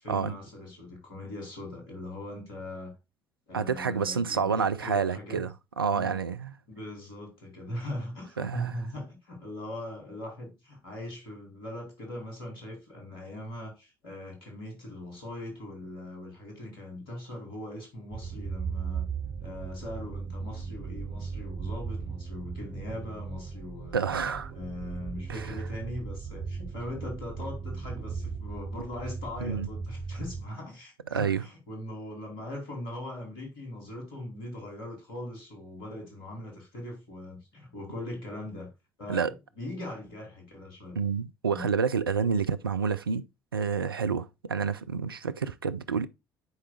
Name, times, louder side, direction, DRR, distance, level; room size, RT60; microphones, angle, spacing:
voice 1, 0.0-2.9 3.5-5.4 5.9-6.2 6.7-38.7 39.0-41.0 41.5-41.7, left 1 dB, 75° left, 2.8 m, -40 dB
voice 2, 3.5-6.5 8.4-8.7 23.9-24.5 25.3-25.5 29.4-29.7 31.1-31.4 39.1-39.3 41.0-43.2 43.5-46.1, right 6 dB, 85° right, 0.4 m, -29 dB
sound 1, 18.1-30.4, right 5 dB, 45° right, 1.3 m, -37 dB
9.4 x 4.7 x 2.2 m
figure-of-eight pair, 55°, 12 cm